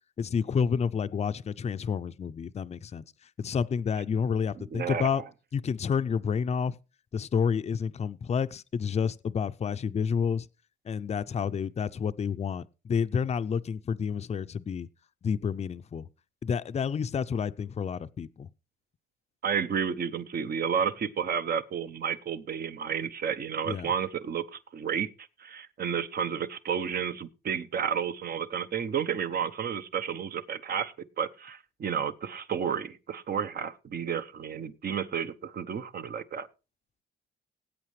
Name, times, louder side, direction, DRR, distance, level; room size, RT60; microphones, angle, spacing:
voice 1, 0.2-3.0 3.4-5.2 5.5-6.8 7.1-10.5 10.9-14.9 15.2-16.1 16.4-18.5 23.7-23.9, left 6 dB, 35° left, 0.5 m, -29 dB
voice 2, 4.5-5.2 19.4-36.5, right 7 dB, 50° right, 0.9 m, -31 dB
19.0 x 8.4 x 3.2 m
cardioid pair, 90°, 20 cm